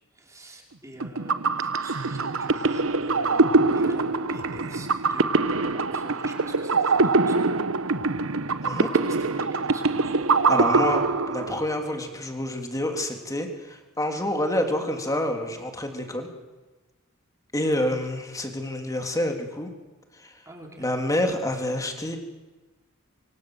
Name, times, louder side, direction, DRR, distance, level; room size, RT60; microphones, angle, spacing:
voice 1, 0.1-5.3 5.7-7.8 8.9-10.2 17.7-18.0 20.4-20.9, right 1 dB, 15° right, 1 dB, 5.0 m, -45 dB
sound 1, 1.0-11.8, right 3 dB, 70° right, 1.1 m, -23 dB
voice 2, 10.5-16.3 17.5-19.7 20.1-20.4 20.8-22.2, left 1 dB, 15° left, 4 dB, 3.2 m, -28 dB
26.0 x 24.5 x 8.0 m, 1.2 s
head